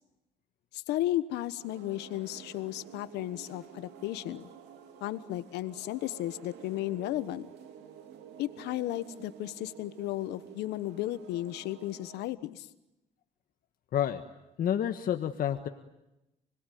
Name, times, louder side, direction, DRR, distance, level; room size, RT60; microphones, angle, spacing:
voice 1, 0.7-4.5 5.0-7.5 8.4-12.7, left 15 dB, 85° left, 13 dB, 1.3 m, -34 dB
sound 1, 1.6-12.2, right 8 dB, 90° right, 3.0 m, -51 dB
voice 2, 13.9-14.2 14.6-15.7, left 10 dB, 55° left, 6 dB, 1.6 m, -29 dB
29.5 x 21.0 x 9.4 m, 0.93 s
cardioid pair, 110°, 17 cm